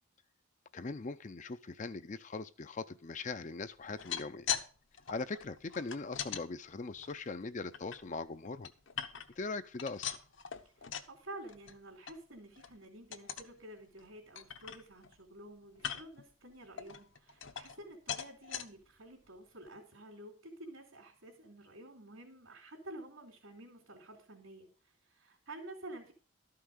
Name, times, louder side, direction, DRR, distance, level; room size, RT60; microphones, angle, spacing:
voice 1, 0.7-4.5 5.1-8.7 9.4-10.1, left 3 dB, 35° left, 0.5 m, -40 dB
sound 1, 3.8-4.7 4.9-6.4 7.0-8.0 8.4-9.4 9.7-11.2 11.5-11.8 12.1-12.2 12.6-12.8 13.1-13.5 14.0-14.1 14.4-15.2 15.8-16.2 16.8-17.8 18.1-18.7 19.3-19.4 19.7-19.8, left 8 dB, 65° left, 1.0 m, -40 dB
voice 2, 10.8-24.7 25.0-26.1, right 1 dB, 80° right, 3.1 m, -50 dB
13.0 x 5.8 x 6.4 m
head